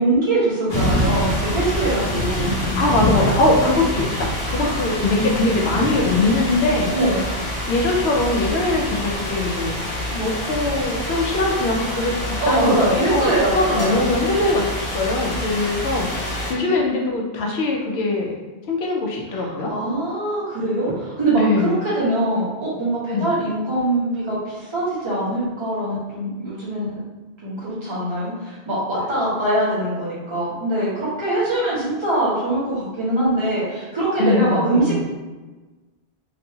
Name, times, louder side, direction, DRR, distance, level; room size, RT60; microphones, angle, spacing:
voice 1, 0.0-2.6 4.5-4.7 6.9-7.2 12.4-14.0 19.3-26.9 27.4-35.0, right 1 dB, 30° right, -8 dB, 1.1 m, -23 dB
sound 1, 0.7-16.5, left 1 dB, 55° left, 1.2 m, -26 dB
voice 2, 2.8-6.9 7.7-9.8 10.1-18.4 18.7-19.7 21.4-21.8 23.1-23.3 34.2-35.0, left 2 dB, 80° left, 0 dB, 0.9 m, -22 dB
3.1 x 2.6 x 2.8 m, 1.2 s
omnidirectional pair, 1.1 m